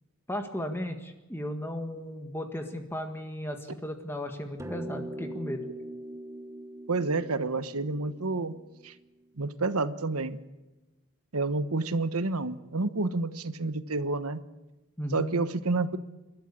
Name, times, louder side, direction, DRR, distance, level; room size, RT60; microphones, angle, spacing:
voice 1, 0.3-5.6 15.0-15.4, equal, 10° left, 5 dB, 1.6 m, -35 dB
sound 1, 4.6-9.3, right 1 dB, 15° right, 1.1 m, -41 dB
voice 2, 6.9-8.5 8.8-8.9 9.4-10.4 11.3-14.4 15.1-16.0, right 3 dB, 80° right, 12 dB, 1.2 m, -29 dB
28.5 x 13.0 x 8.7 m, 1.1 s
head